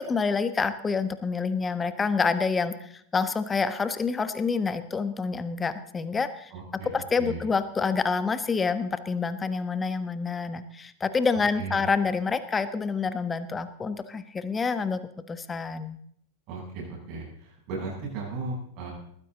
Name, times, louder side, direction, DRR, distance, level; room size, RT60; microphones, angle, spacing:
voice 1, 0.0-6.5 6.8-15.0 15.3-16.0, left 5 dB, 15° left, 12 dB, 1.3 m, -27 dB
voice 2, 6.5-6.9 7.2-7.4 11.5-11.8 16.5-18.9, right 3 dB, 40° right, -1 dB, 7.8 m, -36 dB
21.0 x 15.0 x 4.0 m, 0.68 s
figure-of-eight pair, 90°, 0 cm